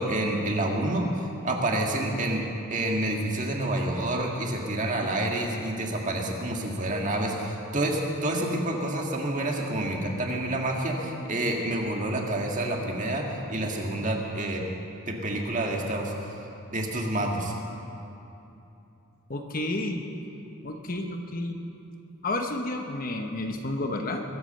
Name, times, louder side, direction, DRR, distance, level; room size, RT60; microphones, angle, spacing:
voice 1, 0.0-2.4 2.7-14.6 15.1-16.1 16.7-17.5, right 1 dB, 35° right, 0 dB, 1.8 m, -28 dB
voice 2, 19.3-20.0 20.6-21.6 22.2-24.2, left 2 dB, 40° left, 4 dB, 1.0 m, -31 dB
22.0 x 8.5 x 6.7 m, 2.8 s
head